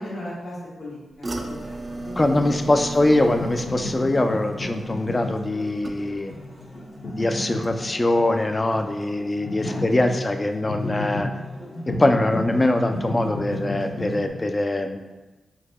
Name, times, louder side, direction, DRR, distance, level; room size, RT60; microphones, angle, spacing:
voice 1, 0.0-2.9 3.1-3.4 9.6-10.1, left 1 dB, 75° left, -8 dB, 1.3 m, -37 dB
sound 1, 1.2-6.4 6.8-7.2 7.6-7.7, right 2 dB, 40° right, 0.3 m, -36 dB
sound 2, 2.0-14.3, left 1 dB, 50° left, 0.8 m, -33 dB
voice 2, 2.2-6.3 7.1-11.3 11.9-15.0, left 2 dB, 35° left, 6 dB, 0.3 m, -22 dB
3.9 x 2.7 x 2.2 m, 1.2 s
supercardioid pair, 40°, 0 cm